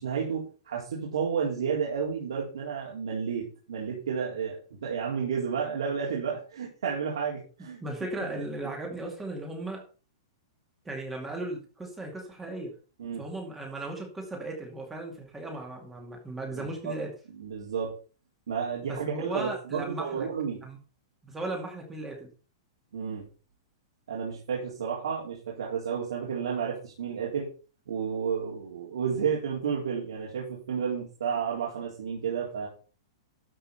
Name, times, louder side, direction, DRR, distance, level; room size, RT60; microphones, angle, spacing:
voice 1, 0.0-7.8 8.3-8.4 13.0-13.2 16.5-16.9 17.3-17.9 18.5-20.6 22.9-23.3 24.1-27.5 27.9-32.7, right 6 dB, 90° right, -3 dB, 3.7 m, -31 dB
voice 2, 7.8-9.8 10.8-12.7 13.1-17.1 18.8-20.3 20.6-20.8 21.2-22.3, right 2 dB, 5° right, 1 dB, 2.3 m, -36 dB
12.5 x 5.7 x 5.6 m, 0.37 s
supercardioid pair, 175°, 3 cm